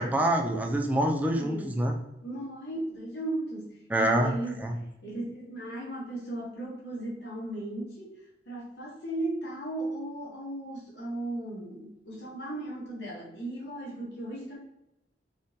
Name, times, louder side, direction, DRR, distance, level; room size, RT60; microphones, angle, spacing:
voice 1, 0.0-1.9 3.9-4.3 4.6-4.7, right 1 dB, 10° right, 2 dB, 0.4 m, -26 dB
voice 2, 1.3-1.9 2.2-4.7 5.0-8.2 8.5-14.6, right 1 dB, 80° left, -5 dB, 1.1 m, -36 dB
3.6 x 2.5 x 2.7 m, 0.88 s
head